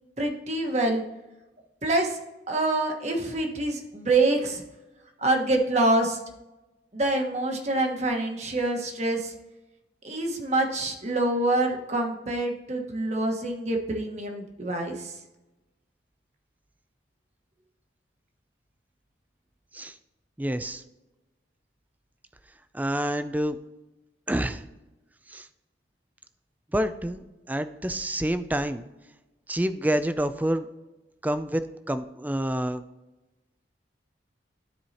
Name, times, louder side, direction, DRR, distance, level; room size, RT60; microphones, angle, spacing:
voice 1, 0.2-1.0 1.8-2.2 2.5-4.6 5.2-6.2 6.9-9.3 10.0-15.1, right 2 dB, 40° right, 2 dB, 1.4 m, -26 dB
voice 2, 20.4-20.8 22.7-23.6 24.3-24.6 25.3-25.5 26.7-28.8 29.5-30.7 31.2-31.6 31.9-32.8, right 1 dB, 10° right, 11 dB, 0.4 m, -28 dB
13.0 x 4.7 x 2.9 m, 1.0 s
head